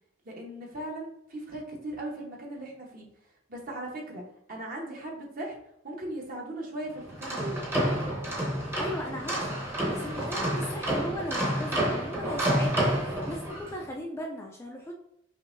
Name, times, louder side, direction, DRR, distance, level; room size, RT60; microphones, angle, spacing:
voice 1, 0.2-3.1 3.5-5.6 5.8-7.6, right 1 dB, 40° right, -1 dB, 1.0 m, -38 dB
sound 1, 7.1-13.7, right 1 dB, 10° right, 0.8 m, -29 dB
voice 2, 8.8-9.6 9.9-14.9, equal, 10° left, 0 dB, 0.4 m, -37 dB
5.6 x 2.7 x 2.6 m, 0.80 s
head